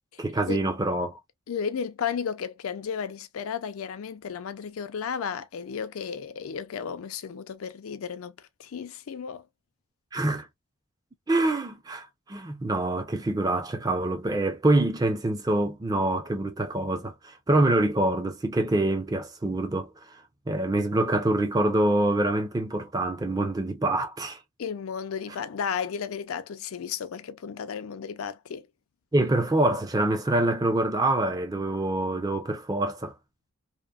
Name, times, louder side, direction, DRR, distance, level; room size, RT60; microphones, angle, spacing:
voice 1, 0.2-1.2 10.1-10.5 11.3-19.9 20.5-24.4 29.1-33.1, right 2 dB, 15° right, 0.4 m, -25 dB
voice 2, 1.5-9.4 24.6-28.7, left 7 dB, 85° left, 0.4 m, -33 dB
2.9 x 2.0 x 2.3 m
head